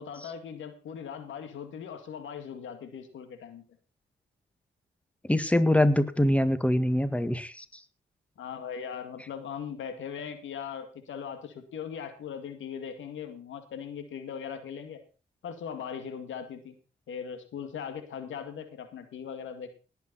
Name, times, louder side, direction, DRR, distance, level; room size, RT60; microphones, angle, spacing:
voice 1, 0.0-3.6 8.4-15.0 15.4-16.8 17.1-19.7, left 7 dB, 85° left, 8 dB, 2.1 m, -39 dB
voice 2, 5.3-7.6, left 1 dB, 5° left, 11 dB, 1.8 m, -24 dB
18.5 x 8.4 x 4.2 m, 0.34 s
supercardioid pair, 50°, 20 cm